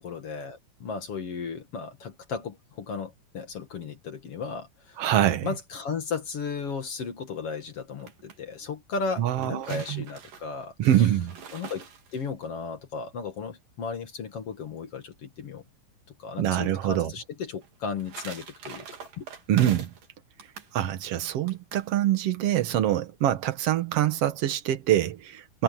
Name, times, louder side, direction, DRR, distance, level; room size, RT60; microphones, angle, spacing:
voice 1, 0.0-5.0 5.4-11.1 11.5-11.8 12.1-15.6 16.2-18.9 19.2-19.3, left 5 dB, 45° left, 2.2 m, -35 dB
voice 2, 5.0-5.5 9.2-10.0 10.8-11.4 16.4-17.1 19.5-19.9 20.7-25.6, right 12 dB, 75° right, 1.3 m, -25 dB
sound 1, 7.8-8.4 9.2-12.5 17.6-20.1 20.4-20.7 21.5-21.9, right 7 dB, 60° right, 4.5 m, -43 dB
omnidirectional pair, 4.6 m